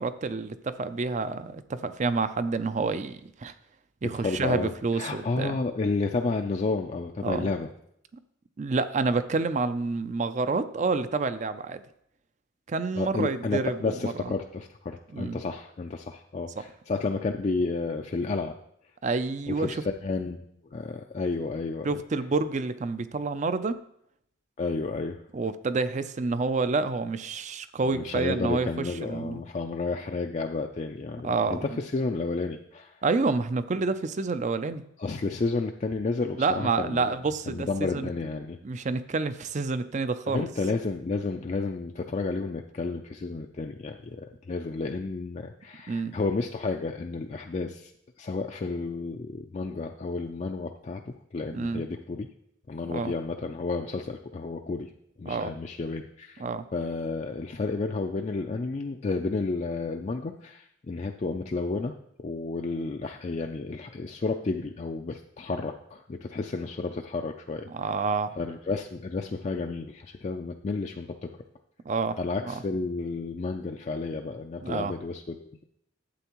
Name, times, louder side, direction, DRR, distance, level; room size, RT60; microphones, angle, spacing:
voice 1, 0.0-3.5 4.0-5.6 7.2-7.5 8.6-11.8 12.7-14.3 15.1-15.4 16.6-16.7 19.0-19.8 21.8-23.8 25.3-29.4 31.2-31.7 33.0-34.8 36.4-38.1 38.6-40.5 45.9-46.1 51.5-51.8 52.9-53.1 55.3-55.5 56.4-56.6 67.7-68.3 71.9-72.2 72.5-72.6 74.6-74.9, right 4 dB, 35° right, 12 dB, 0.4 m, -28 dB
voice 2, 4.0-7.7 13.0-18.6 19.5-21.9 24.6-25.2 27.9-33.0 35.0-37.2 37.5-38.6 40.3-47.9 48.2-52.3 52.7-54.9 55.2-56.4 56.7-61.9 62.2-67.7 68.4-71.3 72.2-75.6, left 3 dB, 35° left, 3 dB, 0.4 m, -31 dB
11.5 x 7.9 x 3.0 m, 0.74 s
head